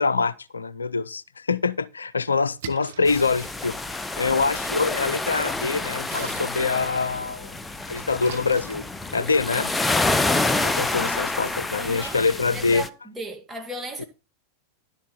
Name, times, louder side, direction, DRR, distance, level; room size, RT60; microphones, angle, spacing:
voice 1, 0.0-3.8 4.2-7.6 7.9-8.8 9.1-9.7 10.6-12.8 14.0-14.1, left 4 dB, 85° left, 0.4 m, -25 dB
Splash splatter, 2.4-9.7, right 8 dB, 65° right, 1.3 m, -45 dB
sound 1, 3.1-12.9, left 2 dB, 10° left, 0.7 m, -28 dB
voice 2, 10.9-11.4 11.8-12.2 12.5-14.1, right 1 dB, 10° right, 2.3 m, -36 dB
11.5 x 7.4 x 4.2 m
figure-of-eight pair, 90°, 0 cm